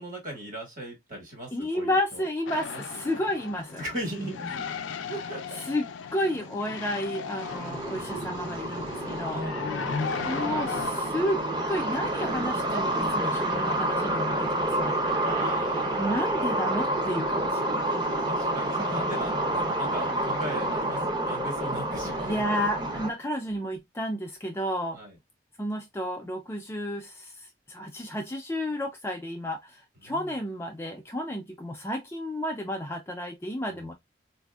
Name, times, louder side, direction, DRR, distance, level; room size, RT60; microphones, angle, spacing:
voice 1, 0.0-2.2 2.6-3.1 3.8-4.7 5.1-5.6 6.1-6.2 7.6-8.1 9.3-10.4 15.1-16.2 18.2-22.3 24.9-25.2 30.0-30.2 33.7-33.8, right 1 dB, 45° right, 1.4 m, -38 dB
voice 2, 1.5-3.8 4.2-4.5 5.0-5.1 5.6-5.8 6.1-9.4 10.2-11.4 11.7-14.9 16.0-17.8 18.8-19.1 22.2-25.0 25.6-33.9, equal, 15° left, 0.4 m, -32 dB
sound 1, 2.5-10.9, left 6 dB, 85° left, 0.4 m, -36 dB
sound 2, 7.4-23.1, right 1 dB, 25° right, 0.7 m, -29 dB
4.0 x 2.6 x 2.2 m
head